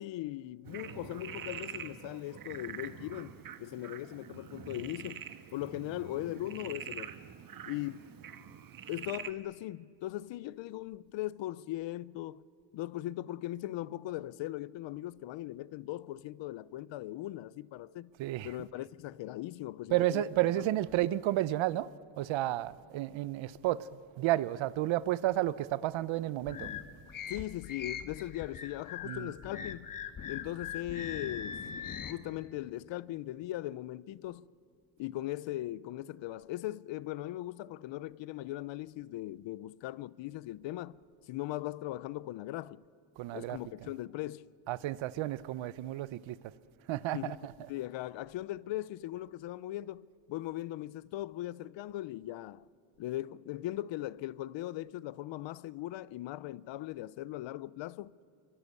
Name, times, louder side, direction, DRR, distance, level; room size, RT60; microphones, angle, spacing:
voice 1, 0.0-5.3 5.5-7.1 7.7-8.1 8.9-12.4 12.7-18.1 18.4-20.7 27.3-29.9 30.3-31.6 32.0-34.5 35.0-41.0 41.3-42.8 43.3-44.5 47.1-47.3 47.7-52.7 53.0-58.1, left 15 dB, 65° left, 0.7 m, -39 dB
Frog, 0.6-9.3, right 8 dB, 45° right, 1.4 m, -45 dB
voice 2, 18.2-18.5 19.9-21.9 22.2-23.9 24.2-26.7 29.0-29.3 43.2-43.6 44.7-46.4 46.9-47.5, right 15 dB, 70° right, 0.9 m, -31 dB
sound 1, 26.5-32.1, left 7 dB, 40° left, 1.6 m, -41 dB
26.5 x 24.0 x 8.3 m
cardioid pair, 125°, 48 cm